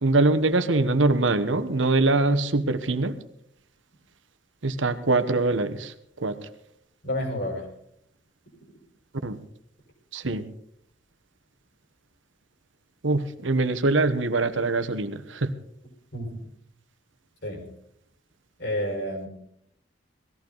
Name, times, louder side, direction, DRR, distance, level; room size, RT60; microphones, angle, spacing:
voice 1, 0.0-3.2 4.6-5.9 6.2-6.4 9.2-9.4 10.1-10.4 13.0-15.5, right 2 dB, 90° right, 10 dB, 1.2 m, -23 dB
voice 2, 7.0-7.7 16.1-16.4 17.4-17.6 18.6-19.3, left 1 dB, 60° left, 1 dB, 5.3 m, -30 dB
19.0 x 14.5 x 4.0 m, 0.71 s
head